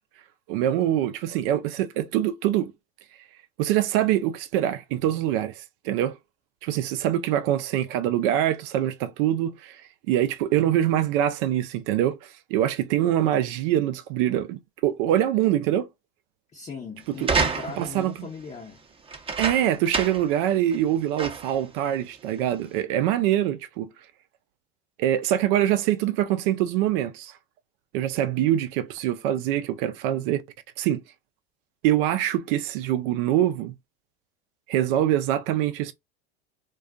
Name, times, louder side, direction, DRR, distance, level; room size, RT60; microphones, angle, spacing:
voice 1, 0.5-2.7 3.6-6.2 6.6-9.8 10.1-15.9 17.2-17.3 17.8-18.3 19.4-23.9 25.0-27.3 27.9-30.4 30.8-31.0 31.8-33.7 34.7-35.9, right 12 dB, 60° right, 0.5 m, -24 dB
voice 2, 16.5-18.8, left 5 dB, 20° left, 0.7 m, -39 dB
sound 1, 17.2-18.0 19.1-20.3 20.7-20.8 21.2-21.6 22.4-22.5, right 4 dB, 20° right, 0.6 m, -28 dB
2.4 x 2.3 x 2.3 m
hypercardioid pair, 85°, 31 cm